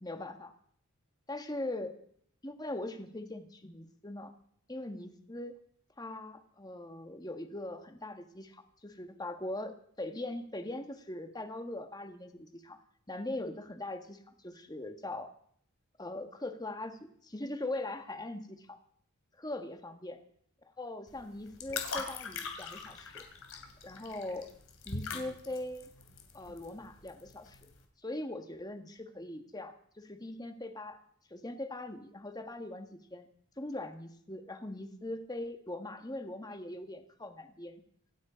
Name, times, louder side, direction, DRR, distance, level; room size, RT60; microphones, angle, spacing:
voice 1, 0.0-0.5 1.3-1.9 2.4-4.3 4.7-5.5 6.0-12.8 13.1-15.3 16.0-18.8 19.4-20.2 20.8-23.2 23.8-24.5 24.9-25.9 26.3-27.7 28.0-31.0 31.3-33.3 33.6-37.8, left 1 dB, 20° left, 7 dB, 1.4 m, -41 dB
sound 1, 21.1-27.8, left 4 dB, 65° left, 3.0 m, -42 dB
26.0 x 9.6 x 5.1 m, 0.64 s
head